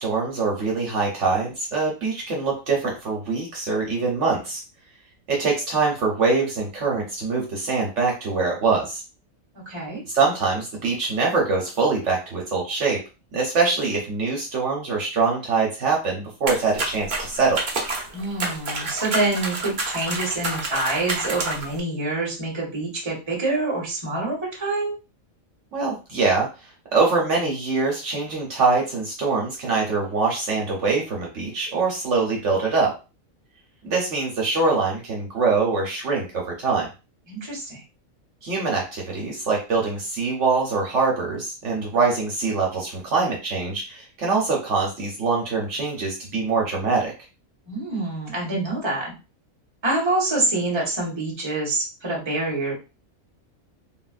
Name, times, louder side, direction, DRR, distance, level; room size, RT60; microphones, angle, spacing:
voice 1, 0.0-4.6 5.3-9.0 10.1-13.0 13.3-17.6 25.7-26.5 26.9-32.9 33.8-36.9 38.4-47.1, right 4 dB, 65° right, -2 dB, 1.0 m, -23 dB
voice 2, 9.7-10.0 18.1-25.0 37.3-37.8 47.7-49.1 49.8-52.8, right 2 dB, 20° right, -2 dB, 1.0 m, -26 dB
sound 1, 16.5-21.8, right 2 dB, 45° right, 0.8 m, -29 dB
3.4 x 2.4 x 2.4 m, 0.30 s
omnidirectional pair, 1.4 m